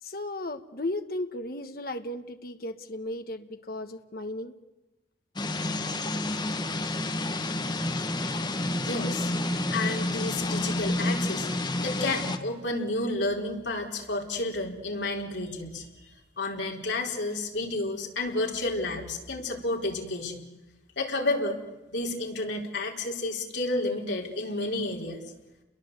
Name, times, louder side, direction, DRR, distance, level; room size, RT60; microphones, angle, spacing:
voice 1, 0.0-4.5, left 1 dB, 50° left, 8 dB, 1.2 m, -35 dB
sound 1, 5.4-12.4, left 2 dB, 25° left, 1.3 m, -29 dB
voice 2, 8.8-9.3 9.7-11.5 11.8-20.4 21.0-21.6 21.9-25.2, left 2 dB, 75° left, 1 dB, 4.2 m, -31 dB
29.5 x 22.0 x 8.1 m, 1.0 s
head